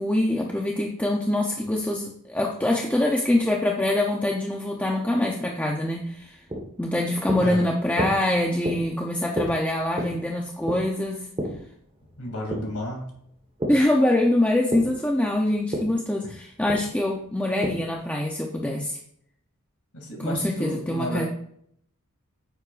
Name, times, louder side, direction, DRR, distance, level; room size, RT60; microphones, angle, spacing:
voice 1, 0.0-6.4 6.8-11.3 13.7-19.0 20.2-21.3, left 1 dB, 5° left, -1 dB, 0.7 m, -24 dB
sound 1, 6.0-13.9 14.2-18.0, equal, 25° right, 1.5 m, -33 dB
voice 2, 12.2-13.1 16.2-16.3 19.9-21.3, left 1 dB, 80° left, 1 dB, 2.8 m, -32 dB
9.5 x 7.9 x 2.5 m, 0.68 s
head